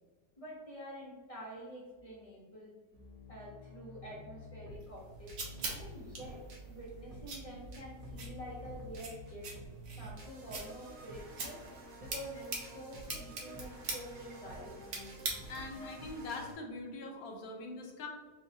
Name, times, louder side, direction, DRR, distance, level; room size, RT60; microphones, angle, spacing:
voice 1, 0.4-2.8 3.3-5.4 5.7-6.4 6.7-9.5 10.0-11.6 12.0-14.8, right 1 dB, 50° left, -6 dB, 0.4 m, -48 dB
sound 1, 2.9-16.5, equal, 80° right, 1.3 m, -50 dB
sound 2, 4.8-15.8, right 3 dB, 55° right, 1.1 m, -44 dB
voice 2, 15.5-18.1, left 3 dB, 70° left, 1 dB, 1.2 m, -43 dB
5.6 x 2.1 x 2.7 m, 1.4 s
omnidirectional pair, 1.7 m